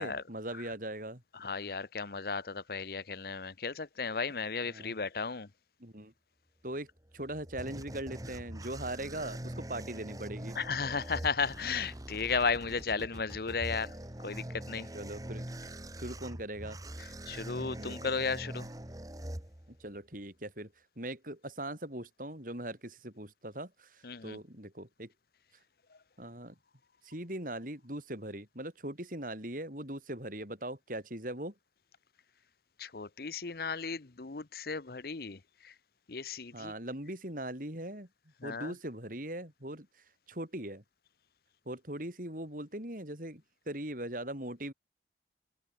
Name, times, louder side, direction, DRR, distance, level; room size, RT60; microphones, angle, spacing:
voice 1, 0.0-1.2 4.7-4.9 5.8-6.1 6.6-10.6 13.0-13.1 14.9-15.5 16.0-16.8 17.7-18.1 19.8-25.1 26.2-26.6 27.0-31.5 36.5-38.1 38.4-40.8 41.7-44.7, right 1 dB, 50° right, 7.3 m, -40 dB
voice 2, 1.4-5.5 10.6-13.9 14.2-14.9 17.3-18.7 24.0-24.4 32.8-35.4 35.6-35.7 36.1-36.7 38.4-38.7, left 5 dB, 55° left, 0.9 m, -34 dB
sound 1, 7.0-20.0, right 1 dB, 20° right, 1.6 m, -43 dB
head